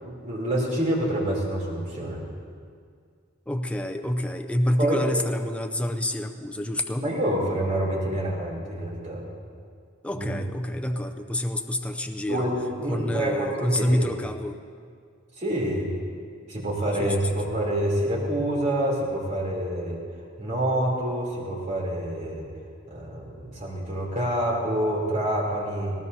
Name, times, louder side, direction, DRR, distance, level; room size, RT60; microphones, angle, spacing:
voice 1, 0.0-2.2 4.8-5.0 7.0-9.3 10.1-10.4 12.3-14.1 15.4-15.9 16.5-20.0 20.4-22.4 22.9-25.9, right 1 dB, 35° right, -4 dB, 3.2 m, -27 dB
voice 2, 3.5-7.1 10.0-12.5 12.9-14.6 17.0-17.3, left 1 dB, 5° left, 3 dB, 0.5 m, -27 dB
19.0 x 18.0 x 2.8 m, 2.1 s
head